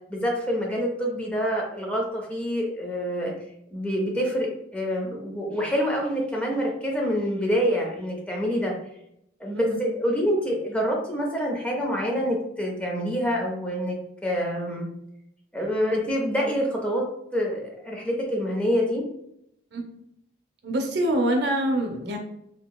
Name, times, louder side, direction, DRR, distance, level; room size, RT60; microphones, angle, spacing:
voice 1, 0.1-3.3 3.7-8.7 9.4-14.0 14.2-14.9 15.5-17.0 17.3-19.0, equal, 5° left, -1 dB, 0.5 m, -26 dB
voice 2, 20.6-22.2, right 1 dB, 60° right, 2 dB, 0.6 m, -25 dB
2.9 x 2.7 x 2.2 m, 0.77 s
head